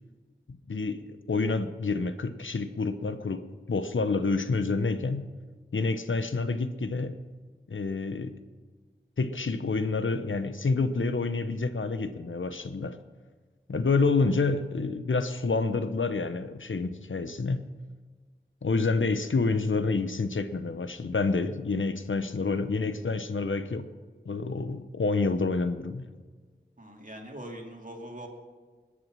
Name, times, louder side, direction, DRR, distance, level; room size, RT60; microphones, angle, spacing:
voice 1, 0.7-3.4 3.7-5.3 5.7-7.2 7.7-8.3 9.2-13.0 13.7-17.6 18.6-23.9 24.3-26.1, left 3 dB, 90° left, 11 dB, 0.9 m, -28 dB
voice 2, 22.1-22.6 26.8-28.3, right 1 dB, 40° right, 1 dB, 2.7 m, -43 dB
21.5 x 8.5 x 6.2 m, 1.4 s
wide cardioid pair, 40°, 20 cm